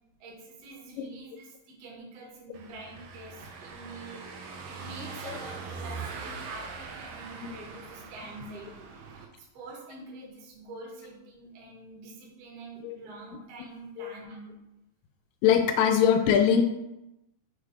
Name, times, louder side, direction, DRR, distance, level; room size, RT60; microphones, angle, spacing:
voice 1, 0.2-4.3 4.7-14.5, right 2 dB, 55° right, -2 dB, 1.9 m, -46 dB
Car passing by / Engine, 2.5-9.3, right 5 dB, 80° right, 1.9 m, -42 dB
voice 2, 15.4-16.6, left 8 dB, 80° left, 5 dB, 2.1 m, -22 dB
6.2 x 3.3 x 4.7 m, 0.93 s
omnidirectional pair, 4.0 m